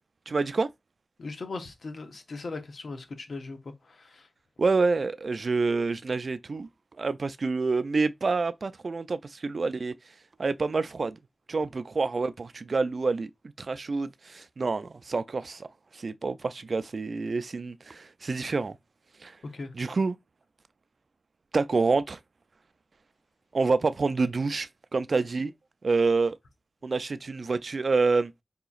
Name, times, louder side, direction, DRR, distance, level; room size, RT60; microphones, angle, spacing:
voice 1, 0.3-0.7 4.6-6.7 7.0-9.9 10.4-11.2 11.5-13.3 13.6-15.7 15.9-18.8 19.2-19.4 19.7-20.2 21.5-22.2 23.5-25.5 25.8-26.4 26.8-28.3, right 4 dB, 70° right, 0.3 m, -27 dB
voice 2, 1.2-4.3 19.5-19.7, left 3 dB, 85° left, 0.8 m, -39 dB
4.8 x 2.9 x 2.3 m
wide cardioid pair, 55°, 0 cm